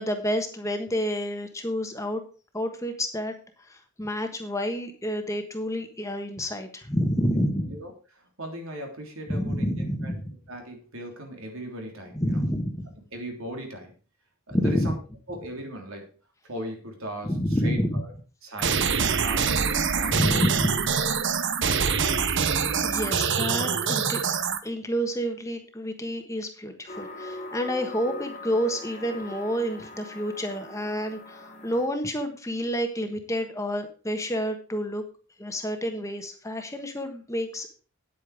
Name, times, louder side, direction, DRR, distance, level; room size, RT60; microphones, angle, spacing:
voice 1, 0.0-2.2 2.5-7.7 9.3-10.3 12.1-12.9 14.5-14.9 17.2-18.0 20.1-20.9 22.2-24.2 24.6-35.0 35.4-37.7, equal, 15° left, 6 dB, 1.3 m, -29 dB
voice 2, 7.7-10.1 10.5-12.4 13.1-13.9 14.5-15.0 15.3-16.1 16.4-18.1 18.4-20.4 20.9-21.1, right 1 dB, 70° right, 3 dB, 3.3 m, -38 dB
sound 1, 18.6-24.6, right 6 dB, 55° right, 0.9 m, -25 dB
sound 2, 26.9-31.9, left 2 dB, 35° left, 1.5 m, -41 dB
9.7 x 8.6 x 4.9 m, 0.36 s
head